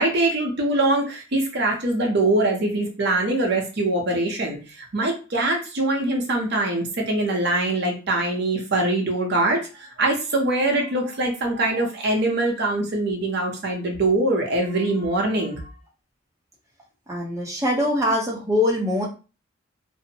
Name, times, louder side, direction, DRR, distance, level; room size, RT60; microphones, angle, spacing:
voice 1, 0.0-4.6 4.9-9.6 10.0-15.6, right 2 dB, 60° right, 0 dB, 0.7 m, -23 dB
voice 2, 17.1-19.1, left 1 dB, 15° right, -3 dB, 0.6 m, -23 dB
2.6 x 2.0 x 2.7 m, 0.33 s
head